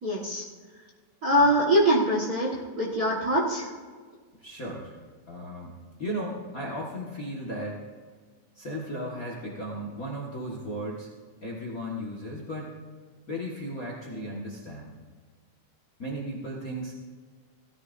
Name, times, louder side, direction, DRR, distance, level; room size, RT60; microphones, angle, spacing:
voice 1, 0.0-0.4 1.2-3.7, equal, 40° right, -5 dB, 1.5 m, -23 dB
voice 2, 4.4-5.0 5.3-7.8 8.5-11.1 11.4-12.8 13.3-15.0 16.0-16.9, equal, 40° left, -2 dB, 1.3 m, -35 dB
17.5 x 13.5 x 2.6 m, 1.5 s
omnidirectional pair, 3.6 m